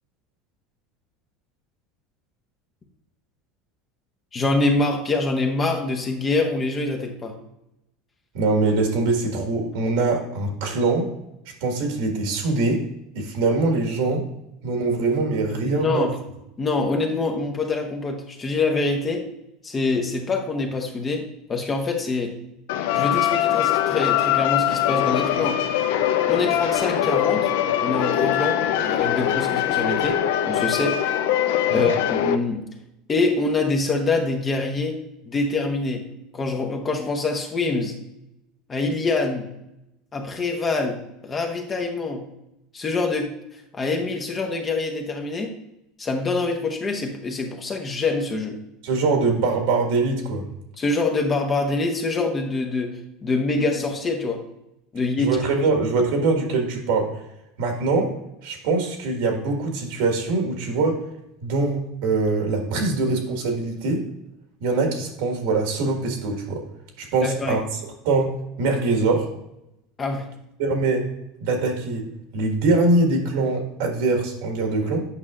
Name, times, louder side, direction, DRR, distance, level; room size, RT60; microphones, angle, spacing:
voice 1, 4.3-7.3 15.7-16.2 16.6-19.2 19.6-21.2 21.5-22.3 22.9-25.6 26.3-27.5 27.8-30.2 30.5-31.0 31.7-32.6 33.1-35.0 35.3-36.0 36.3-38.0 38.7-39.5 40.1-42.2 42.7-43.3 43.7-45.5 46.0-48.6 50.8-54.4 54.9-55.4 67.2-67.6 70.0-70.3, left 3 dB, 25° left, 3 dB, 0.9 m, -25 dB
voice 2, 8.3-11.1 11.6-12.8 13.1-14.2 14.6-16.1 31.7-31.9 48.8-50.4 55.2-57.1 57.6-58.1 58.4-61.0 61.4-64.0 64.6-66.6 67.0-67.6 68.0-69.3 70.6-71.0 71.4-72.1 72.3-75.0, right 3 dB, 75° right, 2 dB, 1.7 m, -23 dB
sound 1, 22.7-32.4, left 11 dB, 80° left, 0.5 m, -22 dB
8.3 x 5.4 x 2.5 m, 0.86 s
supercardioid pair, 130°, 0 cm